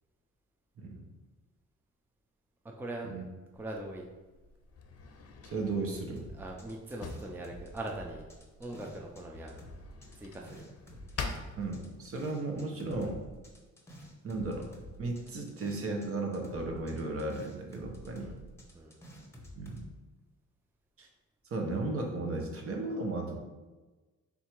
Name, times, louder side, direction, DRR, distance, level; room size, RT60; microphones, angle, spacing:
voice 1, 2.6-3.2 3.5-4.1 6.3-8.3 8.6-9.6 10.1-10.7 11.1-11.3 18.2-18.4 18.7-19.0, right 1 dB, 5° right, 0 dB, 0.5 m, -41 dB
Drawer open or close, 3.5-12.3, left 4 dB, 50° left, 0.7 m, -46 dB
voice 2, 5.4-6.2 11.6-13.2 14.2-14.7 15.0-18.3 19.6-19.9 21.0-21.1 21.5-23.4, right 2 dB, 50° right, 2 dB, 0.9 m, -35 dB
sound 1, 6.2-9.2 9.5-16.1 16.3-19.9, equal, 10° left, 0.9 m, -50 dB
3.6 x 2.8 x 4.4 m, 1.2 s
cardioid pair, 90°, 30 cm